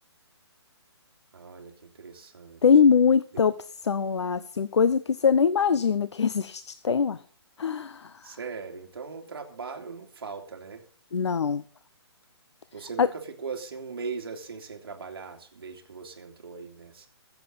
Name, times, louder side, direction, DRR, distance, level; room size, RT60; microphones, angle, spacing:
voice 1, 1.3-2.6 3.3-3.4 8.2-10.8 12.7-17.1, right 5 dB, 55° right, 2.7 m, -39 dB
voice 2, 2.6-3.5 3.8-7.2 7.6-8.3 11.1-11.6 13.0-13.1, left 6 dB, 80° left, 0.8 m, -22 dB
22.5 x 7.7 x 4.0 m
hypercardioid pair, 180°, 14 cm